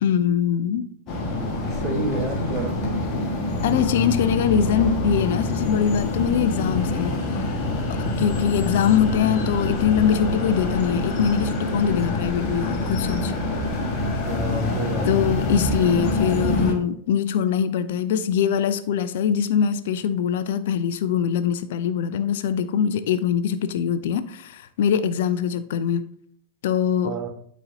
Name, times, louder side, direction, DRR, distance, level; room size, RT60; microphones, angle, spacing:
voice 1, 0.0-0.8 3.6-7.2 7.9-13.3 15.1-26.1 26.6-27.2, left 8 dB, 55° left, 0.4 m, -23 dB
sound 1, 1.1-16.7, left 2 dB, 35° left, 1.6 m, -26 dB
voice 2, 1.8-2.8 14.3-15.2 27.0-27.3, right 1 dB, 30° right, 1.4 m, -29 dB
12.5 x 4.2 x 2.7 m
figure-of-eight pair, 90°, 0 cm